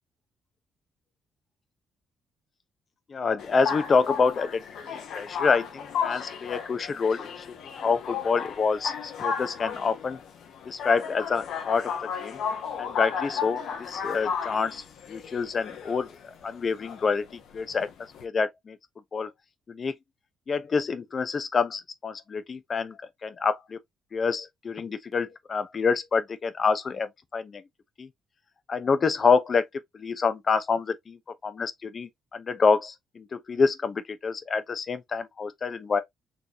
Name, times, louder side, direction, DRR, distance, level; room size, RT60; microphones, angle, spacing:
voice 1, 3.1-4.6 5.1-7.3 7.8-10.2 10.7-11.9 12.2-12.4 12.8-14.8 15.1-16.1 16.4-17.2 17.5-17.9 18.2-18.8 19.1-19.3 19.7-19.9 20.5-22.9 23.2-23.8 24.1-27.1 27.3-27.6 28.0-28.1 28.7-29.6 29.9-31.2 31.4-36.0, left 5 dB, 40° left, 0.8 m, -27 dB
sound 1, 3.4-18.2, left 6 dB, 75° left, 1.3 m, -34 dB
4.7 x 3.3 x 3.0 m
cardioid pair, 90°, 0 cm